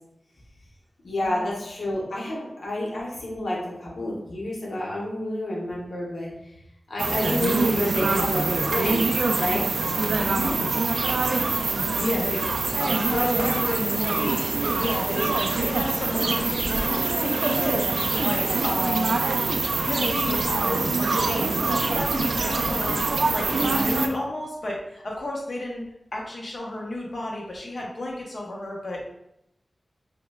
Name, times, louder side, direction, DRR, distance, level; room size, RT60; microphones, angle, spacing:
voice 1, 1.0-6.5 6.9-9.1 9.3-9.6, left 1 dB, 90° left, -4 dB, 0.9 m, -29 dB
sound 1, 7.0-24.1, right 3 dB, 90° right, 0.3 m, -24 dB
voice 2, 10.2-10.6 11.9-12.4 12.8-14.4 14.7-19.2 19.7-23.0 23.3-29.0, left 1 dB, 60° left, -2 dB, 0.8 m, -31 dB
5.3 x 2.2 x 2.3 m, 0.83 s
wide cardioid pair, 85°, 0 cm